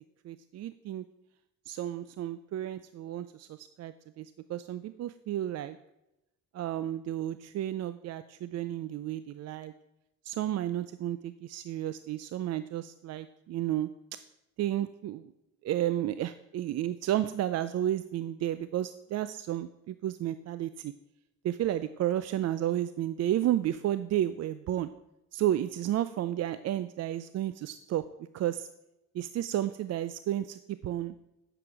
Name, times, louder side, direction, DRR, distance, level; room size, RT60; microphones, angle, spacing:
voice 1, 0.2-1.0 1.7-5.8 6.5-9.7 10.2-13.9 14.6-15.3 15.6-20.9 21.4-24.9 25.3-28.0 28.3-28.7 29.1-31.1, right 12 dB, 60° right, 13 dB, 0.4 m, -32 dB
9.6 x 7.0 x 4.6 m, 0.90 s
cardioid pair, 90°, 30 cm